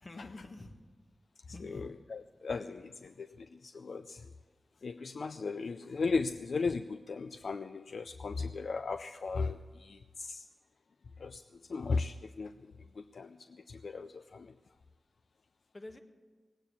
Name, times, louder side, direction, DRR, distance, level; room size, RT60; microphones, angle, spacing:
voice 1, 0.0-0.8 1.5-1.9 15.7-16.0, left 2 dB, 40° left, 1.6 m, -47 dB
voice 2, 1.6-4.2 4.8-10.4 11.2-11.4 11.7-14.5, left 4 dB, 75° left, 0.5 m, -37 dB
18.5 x 9.0 x 8.6 m
cardioid pair, 50°, 0 cm